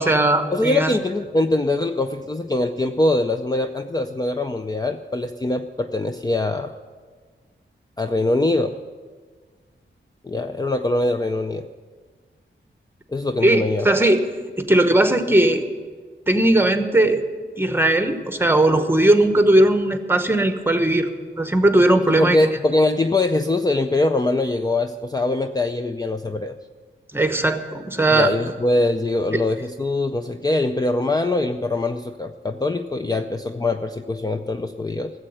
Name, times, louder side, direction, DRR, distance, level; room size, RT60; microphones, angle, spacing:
voice 1, 0.0-0.9 13.4-14.2 14.6-15.6 16.3-17.2 17.6-21.1 21.4-22.4 27.1-28.3, right 1 dB, 10° right, 8 dB, 1.0 m, -18 dB
voice 2, 0.5-6.7 8.0-8.8 10.2-11.7 13.1-13.9 22.1-26.5 28.1-35.1, left 2 dB, 20° left, 7 dB, 0.5 m, -23 dB
14.5 x 7.8 x 8.0 m, 1.5 s
wide cardioid pair, 95°, 20 cm